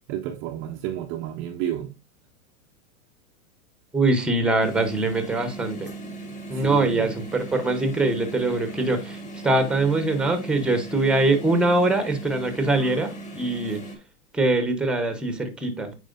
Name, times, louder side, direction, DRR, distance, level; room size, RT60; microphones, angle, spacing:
voice 1, 0.1-1.9 6.5-7.1, right 11 dB, 30° right, 0.5 m, -31 dB
voice 2, 3.9-5.9 6.5-13.9 14.3-15.9, right 2 dB, ahead, 0.8 m, -23 dB
sound 1, 4.6-14.0, right 2 dB, 15° left, 1.4 m, -38 dB
9.0 x 5.0 x 2.5 m
supercardioid pair, 135°, 44 cm